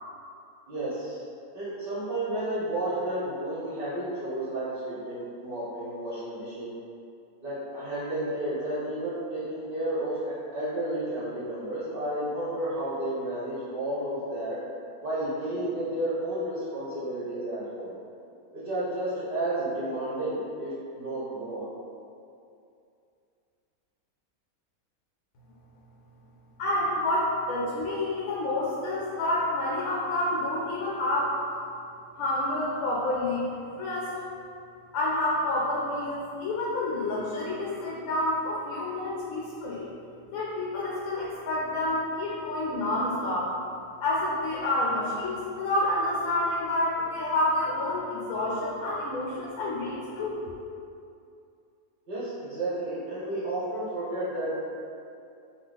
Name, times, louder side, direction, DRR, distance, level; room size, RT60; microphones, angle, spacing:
voice 1, 0.7-1.2 1.5-6.8 7.4-14.6 15.0-17.9 18.5-21.7 52.1-54.5, right 1 dB, 50° right, -11 dB, 0.8 m, -32 dB
voice 2, 26.6-31.3 32.2-33.5 33.8-34.2 34.9-39.9 40.3-43.5 44.0-50.4, left 1 dB, 75° left, -5 dB, 1.0 m, -28 dB
2.9 x 2.4 x 3.9 m, 2.5 s
omnidirectional pair, 1.5 m